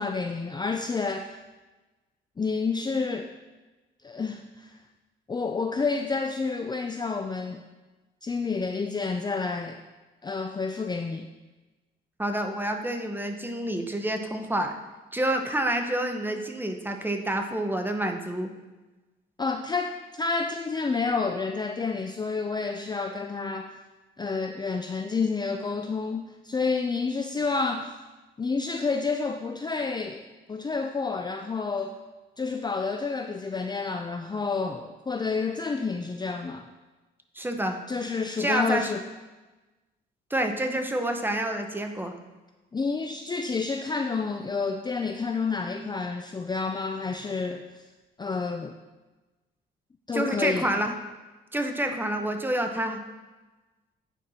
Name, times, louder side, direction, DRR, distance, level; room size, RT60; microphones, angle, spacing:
voice 1, 0.0-1.4 2.4-3.3 4.0-4.8 5.3-7.6 8.2-9.8 10.2-11.3 19.4-23.7 24.2-27.9 28.4-32.0 32.4-36.7 37.9-39.0 42.7-47.8 48.2-48.8 50.1-50.8, left 4 dB, 20° left, 5 dB, 0.5 m, -29 dB
voice 2, 12.2-14.8 15.1-18.5 37.3-37.8 38.4-38.9 40.3-42.1 50.1-50.9 51.5-53.0, right 1 dB, 10° right, 5 dB, 1.0 m, -28 dB
9.3 x 4.6 x 5.6 m, 1.2 s
cardioid pair, 90°, 20 cm